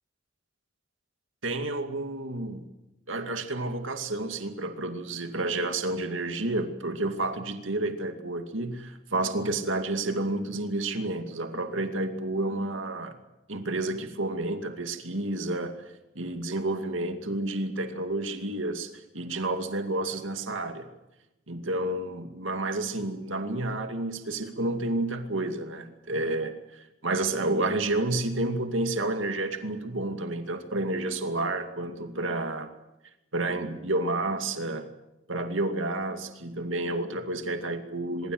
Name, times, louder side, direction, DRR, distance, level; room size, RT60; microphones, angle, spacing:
voice 1, 1.4-2.6 3.1-13.2 13.5-15.8 16.2-20.9 21.5-32.7 33.3-34.9 35.3-38.3, right 2 dB, 75° right, 7 dB, 2.4 m, -30 dB
24.5 x 22.5 x 7.9 m, 0.96 s
head